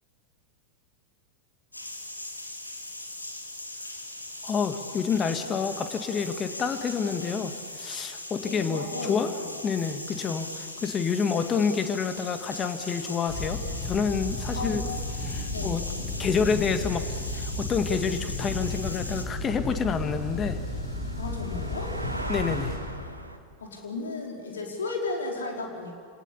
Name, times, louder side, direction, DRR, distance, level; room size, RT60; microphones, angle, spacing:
sound 1, 1.7-19.2, left 1 dB, 85° left, 2.5 m, -39 dB
voice 1, 4.4-9.3 9.6-14.8 15.2-15.8 16.2-17.0 17.3-20.6 22.3-22.8, left 6 dB, 25° left, 8 dB, 2.0 m, -28 dB
voice 2, 8.4-9.5 14.5-14.8 15.5-15.7 21.2-22.0 23.6-25.9, left 3 dB, 70° left, 0 dB, 4.7 m, -34 dB
sound 2, 13.3-22.8, left 2 dB, 45° left, 7.7 m, -33 dB
sound 3, 14.9-15.0 15.3-16.1 16.7-23.4, right 1 dB, 85° right, 1.7 m, -41 dB
28.5 x 19.0 x 8.5 m, 2.1 s
figure-of-eight pair, 90°, 0 cm